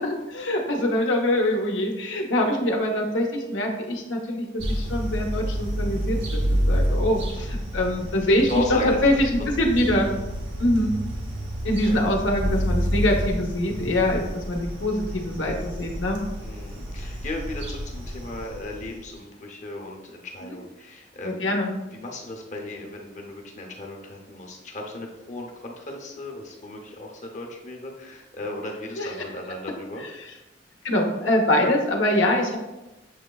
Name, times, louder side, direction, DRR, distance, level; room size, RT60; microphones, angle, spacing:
voice 1, 0.0-10.1 10.6-10.9 11.6-16.2 20.4-20.6 21.2-21.7 29.0-29.1 30.2-30.3 30.8-32.6, left 1 dB, 90° left, 1 dB, 0.8 m, -24 dB
sound 1, 4.6-19.2, equal, 90° right, 0.9 m, -29 dB
voice 2, 8.5-9.1 11.8-12.0 16.4-21.6 21.9-30.0, left 2 dB, 40° left, 1 dB, 0.7 m, -36 dB
7.1 x 3.1 x 2.3 m, 1.0 s
head